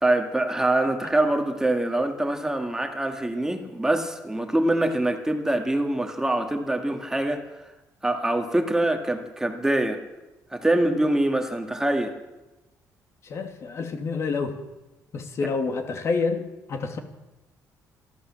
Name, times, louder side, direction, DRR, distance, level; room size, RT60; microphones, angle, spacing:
voice 1, 0.0-7.4 8.0-10.0 10.5-12.2, right 1 dB, 10° right, 4 dB, 1.8 m, -24 dB
voice 2, 13.2-14.5 15.1-17.0, left 4 dB, 45° left, 6 dB, 2.5 m, -28 dB
26.5 x 13.0 x 7.5 m, 1.0 s
cardioid pair, 135°, 7 cm